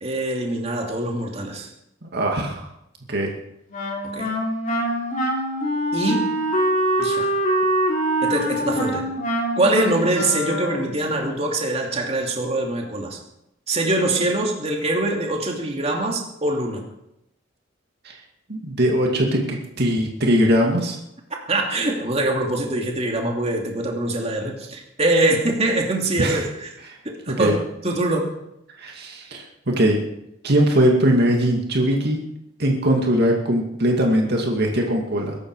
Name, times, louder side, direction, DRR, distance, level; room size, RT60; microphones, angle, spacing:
voice 1, 0.0-1.7 4.1-4.3 5.9-6.4 7.0-7.3 8.2-9.1 9.6-13.2 13.7-16.8 21.5-26.7 27.0-28.3, right 2 dB, 35° right, 1 dB, 2.8 m, -23 dB
voice 2, 2.0-2.7 3.1-3.3 18.0-18.1 18.5-21.0 26.2-26.4 27.3-27.6 28.8-30.1 30.4-32.2 32.6-35.4, equal, 55° right, 1 dB, 2.4 m, -20 dB
Wind instrument woodwind instrument, 3.7-11.0, right 1 dB, 45° left, 3.3 m, -24 dB
22.5 x 12.0 x 4.9 m, 0.81 s
head